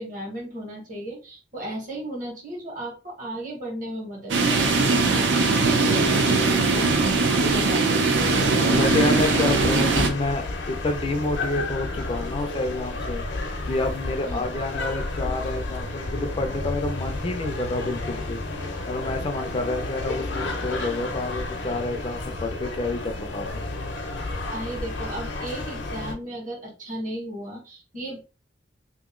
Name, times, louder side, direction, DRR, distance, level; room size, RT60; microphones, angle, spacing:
voice 1, 0.0-8.0 9.1-9.5 14.3-14.4 24.5-28.2, right 1 dB, 45° right, 0 dB, 1.6 m, -35 dB
sound 1, 4.3-10.1, right 3 dB, 75° right, 0.7 m, -20 dB
sound 2, 8.2-26.1, left 2 dB, 75° left, 0.7 m, -31 dB
voice 2, 8.7-13.2 13.7-18.4 18.9-23.6, left 2 dB, 30° left, 6 dB, 0.4 m, -28 dB
2.9 x 2.7 x 3.7 m, 0.32 s
head